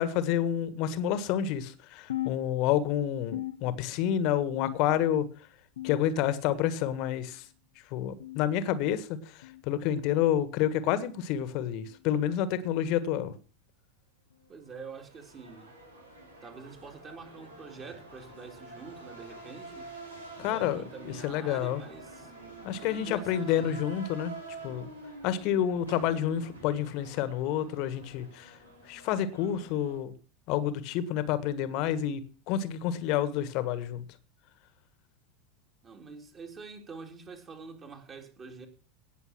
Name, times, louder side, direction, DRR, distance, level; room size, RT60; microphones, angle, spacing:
voice 1, 0.0-5.3 5.8-7.4 7.9-13.3 20.4-20.8 21.2-21.8 22.6-24.3 24.6-24.9 25.2-28.6 28.9-30.1 30.5-32.2 32.5-34.0, left 10 dB, 50° left, 1.6 m, -29 dB
sound 1, 2.1-2.9 3.3-4.1 4.5-5.1 5.8-6.4 7.0-7.4 8.2-8.4 9.4-9.6 10.6-10.8 11.9-12.0 13.1-13.3 14.3-14.5 15.5-15.6 16.7-16.8, left 15 dB, 70° left, 0.7 m, -39 dB
voice 2, 14.5-15.7 16.4-19.9 20.4-22.3 22.8-23.8 35.8-38.7, right 4 dB, 30° right, 3.6 m, -46 dB
sound 2, 14.7-30.0, right 2 dB, 85° right, 4.0 m, -48 dB
18.0 x 6.8 x 6.1 m
figure-of-eight pair, 80°, 0 cm